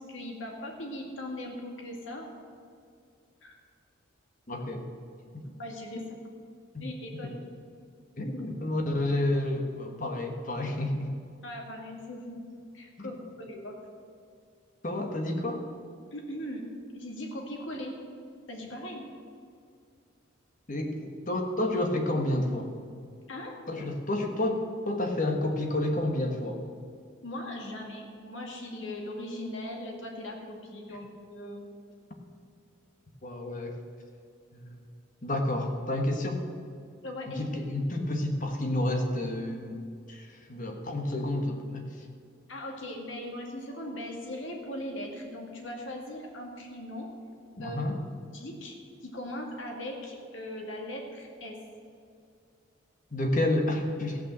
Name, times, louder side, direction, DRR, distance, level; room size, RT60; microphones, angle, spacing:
voice 1, 0.0-2.3 3.4-3.6 5.6-6.0 6.8-7.3 11.4-12.4 12.7-13.2 13.5-13.8 16.1-16.6 16.9-18.0 18.5-19.0 23.3-23.5 27.2-31.7 37.0-37.4 42.5-47.1 47.6-47.8 48.3-48.8 49.0-51.6, left 1 dB, 65° left, 1 dB, 2.1 m, -39 dB
voice 2, 4.5-4.8 5.9-6.0 6.7-6.8 7.2-7.3 8.2-11.1 13.0-13.1 14.8-15.6 20.7-22.7 23.7-24.6 24.8-26.6 33.2-33.8 34.5-34.8 35.2-36.4 37.3-39.8 40.1-41.8 47.6-48.0 53.1-54.2, left 1 dB, 40° left, 3 dB, 1.4 m, -30 dB
14.5 x 5.8 x 7.5 m, 2.3 s
head